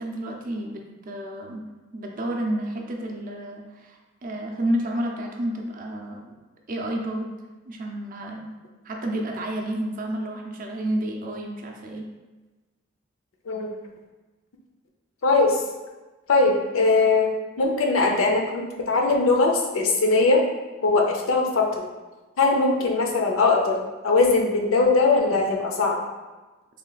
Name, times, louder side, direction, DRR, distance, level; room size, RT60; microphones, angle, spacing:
voice 1, 0.0-1.6 1.9-6.4 6.7-7.4 7.7-8.5 8.8-12.1, right 1 dB, 40° right, 1 dB, 0.4 m, -30 dB
voice 2, 15.2-15.6 16.3-17.3 17.6-20.4 20.8-21.9 22.4-26.0, left 3 dB, 75° left, 1 dB, 0.5 m, -20 dB
3.2 x 2.3 x 3.9 m, 1.2 s
head